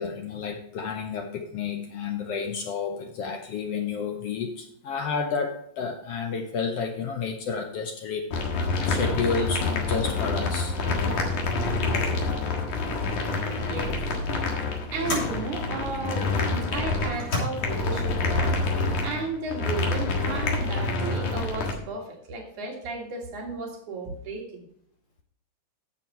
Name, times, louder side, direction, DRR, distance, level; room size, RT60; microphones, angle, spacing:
voice 1, 0.0-8.3 8.9-10.8, left 5 dB, 65° left, 5 dB, 1.6 m, -30 dB
sound 1, 8.3-21.7, left 3 dB, 85° left, 3.2 m, -27 dB
sound 2, 12.7-13.0 14.0-14.1 15.1-15.4 16.2-16.3 17.1-17.4, left 2 dB, 40° left, 3.8 m, -31 dB
voice 2, 13.4-14.0 14.9-24.7, right 3 dB, 75° right, 0 dB, 3.4 m, -34 dB
10.5 x 7.3 x 4.3 m, 0.67 s
omnidirectional pair, 3.5 m